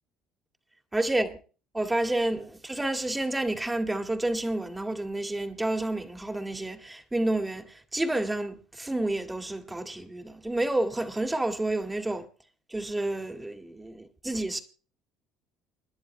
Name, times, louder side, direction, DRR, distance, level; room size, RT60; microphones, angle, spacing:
voice 1, 0.9-1.4 1.7-12.3 12.7-14.6, right 1 dB, 10° right, 2.1 m, -29 dB
29.5 x 11.0 x 2.3 m
hypercardioid pair, 70°, 0 cm